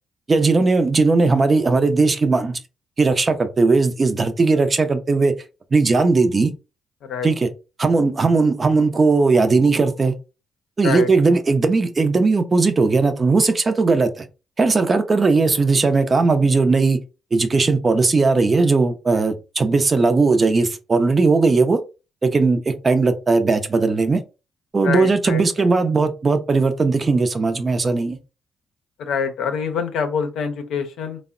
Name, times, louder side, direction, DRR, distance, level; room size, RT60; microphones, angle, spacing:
voice 1, 0.3-2.6 3.0-5.3 5.7-6.5 7.2-7.5 7.8-10.1 10.8-14.3 14.6-17.0 17.3-21.8 22.2-24.2 24.7-28.2, right 3 dB, 40° right, 0.5 m, -18 dB
voice 2, 24.8-25.7 29.0-31.2, left 6 dB, 80° left, 0.5 m, -25 dB
3.3 x 2.0 x 2.4 m
supercardioid pair, 55°, 0 cm